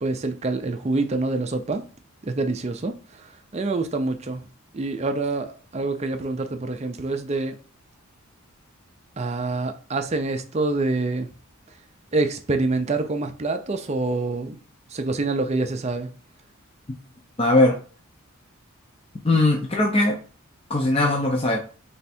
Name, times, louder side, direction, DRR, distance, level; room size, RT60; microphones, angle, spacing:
voice 1, 0.0-1.8 2.2-2.9 3.5-4.4 4.7-7.6 9.2-11.3 12.1-14.6 14.9-16.1, right 3 dB, 30° right, 0.4 m, -26 dB
voice 2, 17.4-17.8 19.2-20.2 20.7-21.6, left 2 dB, 25° left, 0.5 m, -19 dB
3.4 x 3.3 x 4.2 m
head